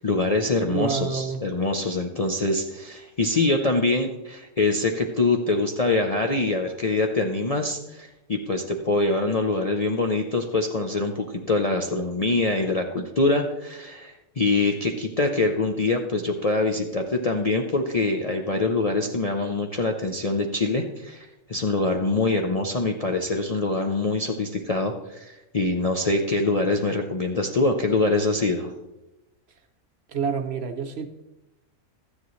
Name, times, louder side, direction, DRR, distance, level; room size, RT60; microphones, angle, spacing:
voice 1, 0.0-28.7, left 2 dB, 40° left, 3 dB, 0.5 m, -24 dB
voice 2, 0.7-1.4 30.1-31.1, right 5 dB, 60° right, 7 dB, 0.9 m, -28 dB
13.5 x 9.7 x 3.1 m, 0.97 s
omnidirectional pair, 1.4 m